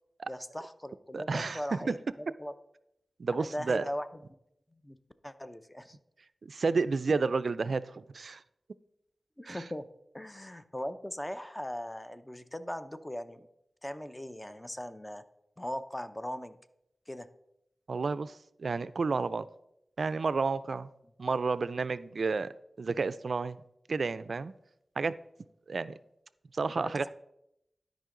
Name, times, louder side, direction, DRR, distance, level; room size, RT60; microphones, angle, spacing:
voice 1, 0.3-2.5 3.4-4.1 4.7-5.0 5.2-6.0 9.4-9.9 10.1-13.5 13.8-15.2 15.6-16.6 17.1-17.3 26.7-27.1, equal, 15° left, 0.5 m, -39 dB
voice 2, 1.1-2.0 3.2-3.9 6.4-8.4 9.5-9.6 17.9-19.5 20.0-20.9 21.2-23.6 23.9-24.5 25.0-25.1 25.7-25.9 26.5-27.1, right 4 dB, 70° right, 0.3 m, -31 dB
12.0 x 5.2 x 3.7 m
wide cardioid pair, 60°, 0 cm